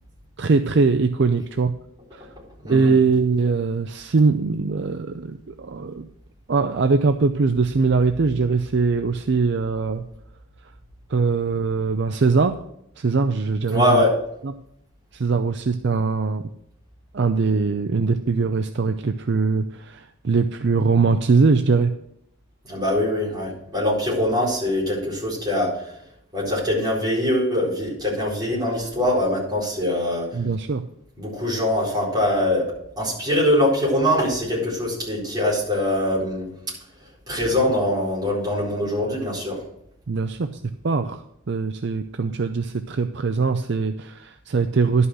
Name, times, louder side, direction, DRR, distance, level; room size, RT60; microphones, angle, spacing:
voice 1, 0.4-1.7 2.1-2.2 2.7-6.1 6.5-10.0 11.1-12.6 13.0-14.0 15.1-16.4 17.1-21.9 30.3-30.8 40.1-40.5 40.8-45.1, right 4 dB, 55° right, 8 dB, 0.5 m, -21 dB
voice 2, 2.6-2.9 13.7-14.1 22.7-25.7 26.3-30.3 31.2-32.7 33.0-36.5 37.3-39.6, left 1 dB, 20° right, -7 dB, 4.5 m, -22 dB
11.5 x 5.5 x 6.3 m, 0.75 s
head